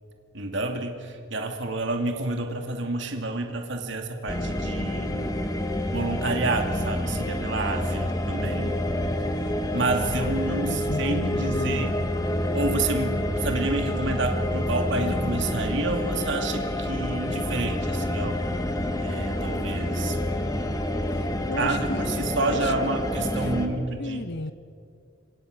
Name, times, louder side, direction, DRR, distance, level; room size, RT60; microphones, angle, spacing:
voice 1, 0.3-5.3 5.9-8.8 9.7-11.9 12.5-18.4 19.0-20.2 21.6-24.2, right 3 dB, 60° right, 4 dB, 2.5 m, -29 dB
sound 1, 4.3-23.7, left 1 dB, 20° left, 2.1 m, -28 dB
voice 2, 10.1-12.1 21.1-22.1 22.5-23.0 23.4-23.5 24.0-24.5, left 2 dB, 55° left, 15 dB, 0.8 m, -34 dB
27.0 x 26.0 x 6.7 m, 2.4 s
head